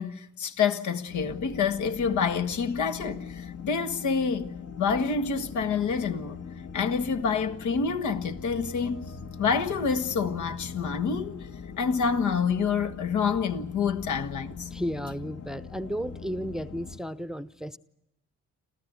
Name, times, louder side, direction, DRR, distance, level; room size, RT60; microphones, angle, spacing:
voice 1, 0.0-6.4 6.7-9.1 9.4-11.5 11.8-14.7, left 6 dB, 75° left, 1.7 m, -27 dB
sound 1, 1.1-17.0, left 6 dB, 55° left, 1.6 m, -41 dB
voice 2, 14.7-17.8, equal, ahead, 0.8 m, -33 dB
27.5 x 14.5 x 9.5 m
cardioid pair, 90°, 30 cm